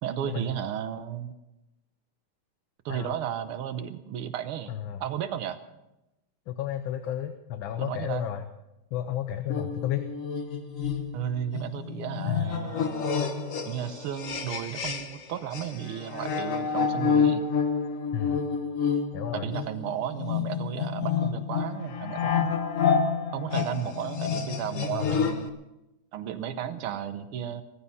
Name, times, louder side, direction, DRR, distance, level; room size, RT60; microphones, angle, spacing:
voice 1, 0.0-1.4 2.9-4.7 5.0-5.6 7.8-8.3 11.1-13.1 13.7-17.4 19.3-22.5 23.3-25.5 26.1-27.6, right 10 dB, 85° right, 9 dB, 1.8 m, -34 dB
voice 2, 4.7-5.0 6.5-8.4 8.9-10.1 12.2-12.5 18.1-18.4 19.1-19.5 24.9-25.3, left 11 dB, 70° left, 9 dB, 1.5 m, -32 dB
sound 1, 9.5-15.2 15.5-25.5, left 6 dB, 50° left, 1.1 m, -29 dB
16.5 x 14.5 x 5.5 m, 0.93 s
omnidirectional pair, 2.3 m